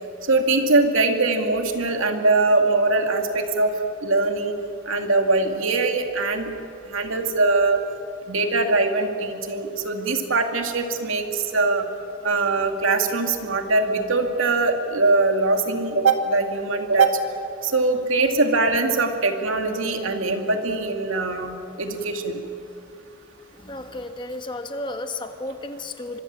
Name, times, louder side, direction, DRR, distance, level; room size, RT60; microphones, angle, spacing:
voice 1, 0.3-3.7 4.0-4.5 4.9-6.5 6.9-7.8 8.3-11.8 12.2-17.2 17.6-22.4, right 3 dB, 80° right, 4 dB, 2.3 m, -22 dB
voice 2, 23.5-26.2, left 2 dB, 25° left, 7 dB, 1.3 m, -33 dB
24.5 x 22.5 x 7.5 m, 2.6 s
head